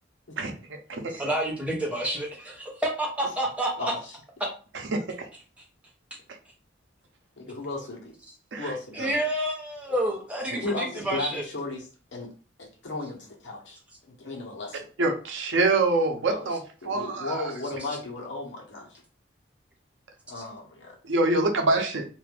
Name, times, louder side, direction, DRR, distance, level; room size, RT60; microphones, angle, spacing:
voice 1, 0.4-1.2 4.9-5.3 8.5-8.7 9.0-9.1 10.5-10.6 15.0-16.6 16.8-17.5 21.0-22.0, right 2 dB, 75° right, 4 dB, 0.6 m, -25 dB
voice 2, 1.1-3.9 8.9-11.4, right 1 dB, 5° right, -2 dB, 0.8 m, -29 dB
voice 3, 7.4-8.1 8.6-9.0 10.6-12.3 12.6-13.8 14.1-14.9 16.3-16.5 16.8-19.0 20.3-21.0, left 3 dB, 70° left, -1 dB, 1.0 m, -35 dB
2.6 x 2.4 x 3.3 m, 0.37 s
head